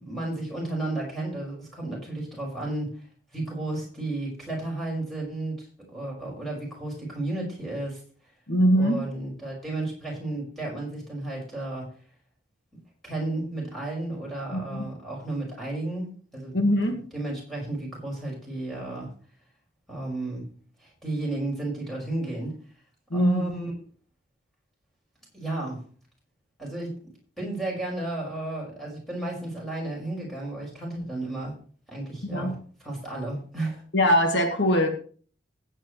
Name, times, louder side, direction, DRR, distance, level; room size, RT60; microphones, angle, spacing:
voice 1, 0.0-3.0 3.3-8.0 8.8-11.9 13.0-16.7 17.1-19.1 19.9-20.5 20.8-22.6 23.1-23.7 25.3-25.8 26.6-27.0 27.4-31.5 31.9-32.6 32.8-33.8, right 2 dB, ahead, -3 dB, 5.5 m, -33 dB
voice 2, 8.5-9.0 14.5-14.9 16.5-17.1 23.1-23.5 32.2-32.6 33.9-34.9, equal, 70° left, 5 dB, 1.7 m, -22 dB
16.0 x 8.9 x 3.2 m, 0.43 s
head